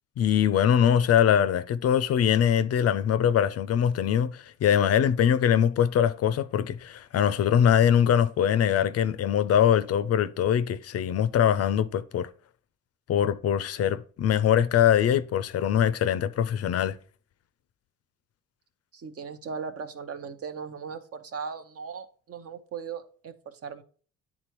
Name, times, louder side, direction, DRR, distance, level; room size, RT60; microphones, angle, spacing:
voice 1, 0.2-12.3 13.1-17.0, left 9 dB, 55° left, 0.4 m, -23 dB
voice 2, 18.9-23.8, right 6 dB, 50° right, 0.7 m, -38 dB
9.7 x 3.6 x 3.0 m
cardioid pair, 90°, 30 cm